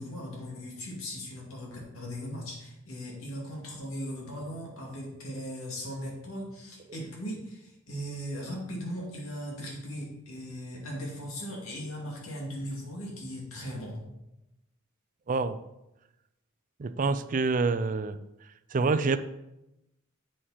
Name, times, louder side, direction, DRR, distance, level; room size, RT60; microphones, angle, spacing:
voice 1, 0.0-14.1, equal, 80° left, -2 dB, 2.2 m, -38 dB
voice 2, 15.3-15.6 16.8-18.2 18.7-19.2, right 4 dB, 40° right, 11 dB, 0.4 m, -26 dB
7.6 x 6.4 x 4.2 m, 0.89 s
head